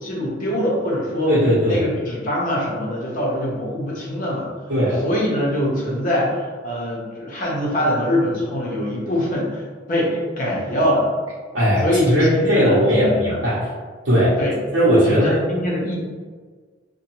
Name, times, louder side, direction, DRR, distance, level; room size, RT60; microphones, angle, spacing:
voice 1, 0.0-1.3 1.7-4.5 5.0-9.6 9.9-11.1 11.8-13.4 14.4-14.6 15.1-15.9, equal, 45° left, -5 dB, 0.8 m, -23 dB
voice 2, 1.3-1.8 4.7-5.0 11.5-13.6 14.0-14.3 14.7-15.3, equal, 70° right, -10 dB, 0.7 m, -18 dB
2.7 x 2.2 x 2.9 m, 1.5 s
head